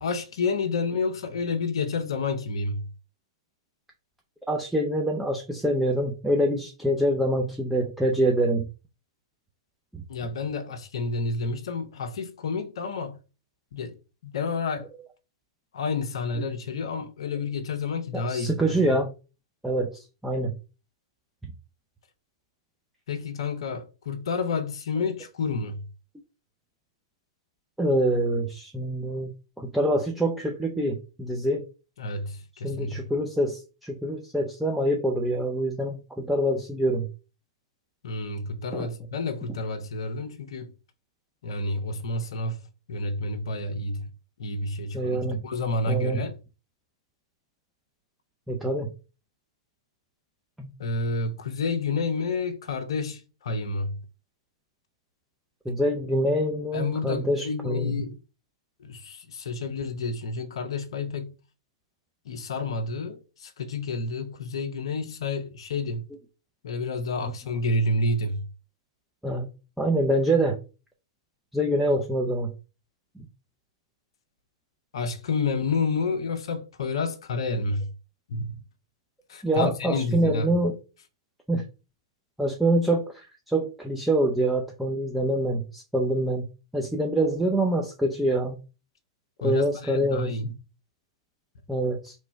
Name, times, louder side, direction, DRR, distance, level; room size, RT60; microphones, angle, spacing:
voice 1, 0.0-2.9 10.1-13.2 13.7-14.0 14.2-14.9 15.7-18.8 23.1-25.8 32.0-33.0 38.0-40.7 41.4-42.6 42.9-44.0 44.4-46.4 50.8-54.0 56.7-58.2 58.8-61.3 62.3-66.1 66.6-68.5 74.9-77.9 78.3-78.6 79.3-80.5 89.4-90.5, left 3 dB, 65° left, 0.6 m, -29 dB
voice 2, 4.5-8.6 9.9-10.0 16.3-16.4 18.1-19.1 19.6-20.5 27.8-29.3 29.6-31.7 32.6-37.1 38.7-38.9 44.9-45.4 45.9-46.2 48.5-48.9 50.6-50.7 55.7-58.0 67.2-67.3 69.2-69.5 69.8-70.6 71.5-72.5 73.2-73.3 79.4-80.8 81.5-81.6 82.4-86.5 86.7-88.6 89.4-90.5 91.7-92.1, right 1 dB, 5° right, 0.6 m, -25 dB
3.1 x 2.2 x 4.2 m
hypercardioid pair, 110°, 3 cm